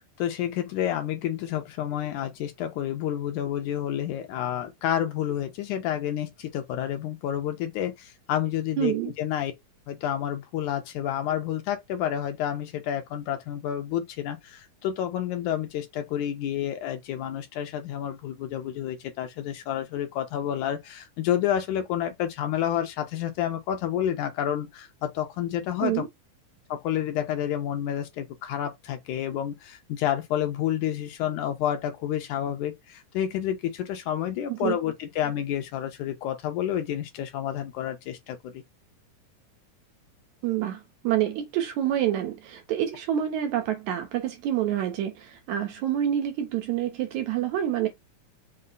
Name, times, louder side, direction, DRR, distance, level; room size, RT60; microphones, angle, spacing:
voice 1, 0.2-9.5 9.9-26.0 26.7-38.6, left 10 dB, 75° left, 2.0 m, -29 dB
voice 2, 8.8-9.1 25.8-26.1 34.5-34.8 40.4-47.9, right 11 dB, 75° right, 1.8 m, -27 dB
5.5 x 2.0 x 3.8 m
omnidirectional pair, 3.8 m